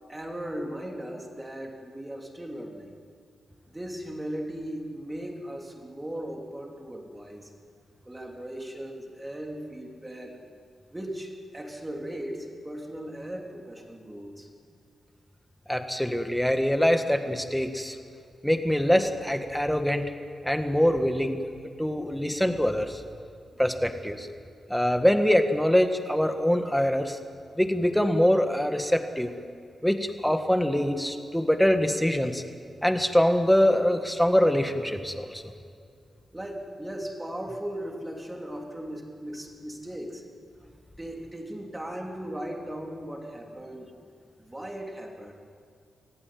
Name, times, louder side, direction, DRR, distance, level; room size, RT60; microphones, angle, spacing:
voice 1, 0.1-3.0 3.7-7.5 8.0-10.4 10.9-14.5 36.3-40.2 41.0-43.9 44.4-45.3, right 1 dB, 15° right, 1 dB, 3.4 m, -37 dB
voice 2, 15.7-18.0 18.4-20.1 20.4-21.4 21.8-23.0 23.6-24.3 24.7-27.2 27.6-29.3 29.8-32.4 32.8-35.4, equal, 5° left, 6 dB, 1.7 m, -24 dB
25.0 x 16.5 x 9.5 m, 2.3 s
wide cardioid pair, 115°, 0 cm